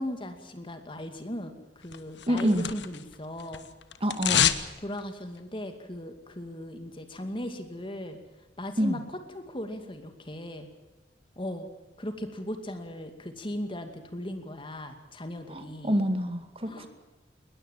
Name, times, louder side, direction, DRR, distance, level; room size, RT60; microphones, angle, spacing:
voice 1, 0.0-3.7 4.2-4.5 4.8-8.2 8.6-10.7 11.4-11.7 12.0-15.9 16.6-16.9, left 1 dB, 30° left, 7 dB, 2.4 m, -37 dB
sound 1, 1.9-3.1 3.4-4.7 5.0-5.1, left 9 dB, 75° left, 1.4 m, -27 dB
voice 2, 2.3-2.7 4.0-4.5 8.8-9.0 15.5-16.9, equal, 30° right, 8 dB, 2.2 m, -27 dB
21.0 x 20.5 x 7.4 m, 1.2 s
head